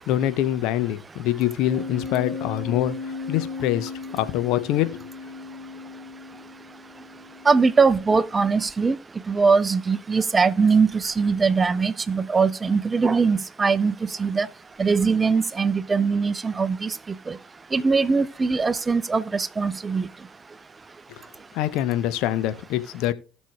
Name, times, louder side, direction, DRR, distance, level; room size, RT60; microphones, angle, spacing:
voice 1, 0.1-5.0 21.1-21.2 21.5-23.1, left 12 dB, 60° left, 0.8 m, -25 dB
sound 1, 1.7-8.7, left 4 dB, 40° left, 4.9 m, -37 dB
voice 2, 7.5-9.0 9.3-14.5 14.8-16.9 17.3-17.4 17.7-20.1, right 4 dB, 25° right, 0.5 m, -21 dB
18.5 x 6.1 x 2.3 m
figure-of-eight pair, 55°, 0 cm